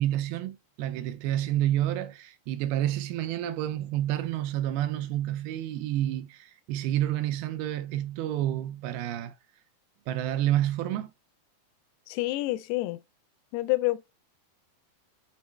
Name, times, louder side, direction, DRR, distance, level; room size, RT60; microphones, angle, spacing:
voice 1, 0.0-9.4 10.1-11.1, right 12 dB, 80° right, 2.3 m, -29 dB
voice 2, 12.1-13.0 13.5-14.0, left 19 dB, 85° left, 2.5 m, -27 dB
8.6 x 3.7 x 3.1 m
omnidirectional pair, 4.7 m